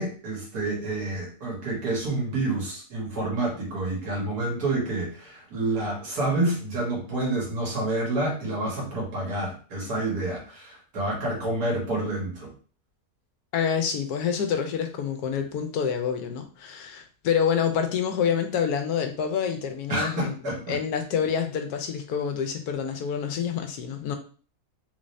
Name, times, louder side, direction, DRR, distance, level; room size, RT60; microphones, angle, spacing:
voice 1, 0.0-12.5 19.9-20.8, right 2 dB, 80° right, -2 dB, 1.9 m, -28 dB
voice 2, 13.5-24.2, left 7 dB, 80° left, 6 dB, 1.1 m, -27 dB
3.8 x 2.6 x 3.1 m, 0.39 s
omnidirectional pair, 1.6 m